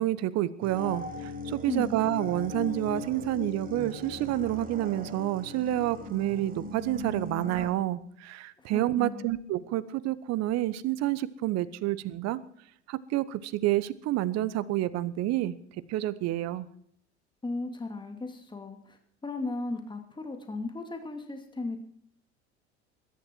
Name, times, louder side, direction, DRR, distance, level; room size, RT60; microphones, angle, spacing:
voice 1, 0.0-12.4 12.9-16.7, right 14 dB, 50° right, 17 dB, 1.1 m, -29 dB
sound 1, 0.6-7.7, left 2 dB, 25° right, 4.7 m, -39 dB
voice 2, 8.6-9.3 17.4-21.8, left 3 dB, 15° left, 5 dB, 2.6 m, -36 dB
21.5 x 11.5 x 4.6 m, 0.65 s
hypercardioid pair, 70°, 34 cm